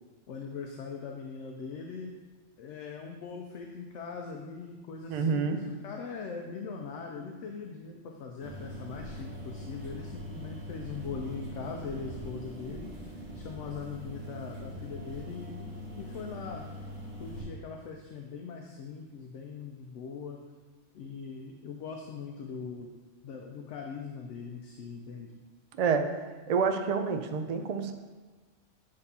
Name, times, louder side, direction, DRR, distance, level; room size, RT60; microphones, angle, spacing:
voice 1, 0.3-2.1 2.6-12.9 13.3-16.7 17.2-20.4 20.9-22.9 23.2-25.3, left 5 dB, 75° left, 2 dB, 0.9 m, -41 dB
voice 2, 5.1-5.6 25.8-26.1 26.5-27.9, right 5 dB, 65° right, 6 dB, 0.4 m, -28 dB
sound 1, 8.4-17.4, equal, 90° right, 1.5 m, -42 dB
7.9 x 5.2 x 2.7 m, 1.3 s
omnidirectional pair, 1.3 m